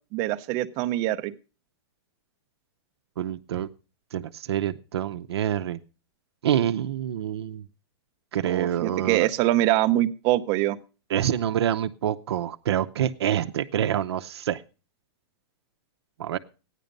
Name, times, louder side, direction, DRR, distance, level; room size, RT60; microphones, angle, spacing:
voice 1, 0.1-1.3 8.4-10.8, right 15 dB, 25° right, 11 dB, 0.6 m, -24 dB
voice 2, 3.2-3.7 4.1-5.8 6.4-7.6 8.3-9.3 11.1-14.6 16.2-16.4, right 10 dB, 65° right, 8 dB, 0.7 m, -26 dB
15.0 x 10.0 x 5.3 m, 0.35 s
supercardioid pair, 175°, 14 cm